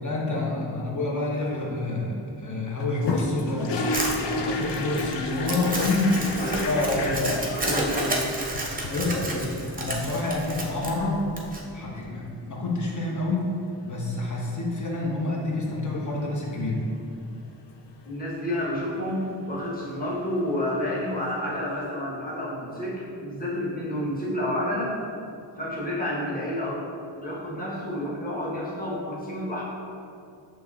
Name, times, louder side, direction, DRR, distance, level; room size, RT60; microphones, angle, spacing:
voice 1, 0.0-3.8 4.4-6.2 6.6-7.4 8.8-11.2 11.7-13.5 13.8-16.8, left 2 dB, 40° left, -3 dB, 0.9 m, -28 dB
Flush-Plunge-Flush, 2.8-7.9 8.5-9.5 11.5-11.6 11.9-12.0 14.2-14.5 20.4-20.5 20.8-20.9, left 2 dB, 70° left, 0.5 m, -31 dB
Crumpling crinkling, 3.9-11.6, right 1 dB, 20° right, 0.7 m, -31 dB
voice 2, 6.3-7.3 7.6-8.2 18.1-24.9 25.6-26.8 27.2-29.6, left 1 dB, 20° left, -7 dB, 1.1 m, -30 dB
6.1 x 3.1 x 2.4 m, 2.5 s
wide cardioid pair, 65°, 44 cm